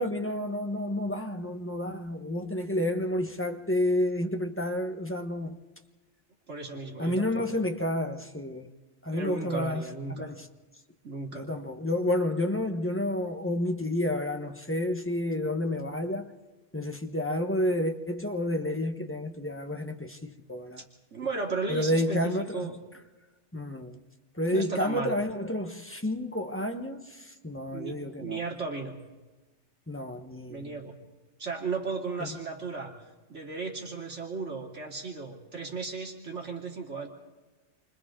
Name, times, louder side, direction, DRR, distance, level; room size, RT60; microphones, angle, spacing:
voice 1, 0.0-5.6 7.0-8.7 9.0-9.8 10.1-10.4 11.3-16.3 16.7-20.8 21.7-22.7 23.5-24.0 24.4-28.4 29.9-30.7 32.2-32.3, left 1 dB, 10° left, 1.2 m, -30 dB
voice 2, 6.5-7.5 9.1-10.3 11.0-11.5 20.8-20.9 21.1-22.8 24.5-25.1 27.7-29.0 30.5-31.0 31.4-32.9 33.3-37.1, right 4 dB, 80° right, 3.3 m, -35 dB
28.0 x 25.0 x 3.8 m
omnidirectional pair, 1.2 m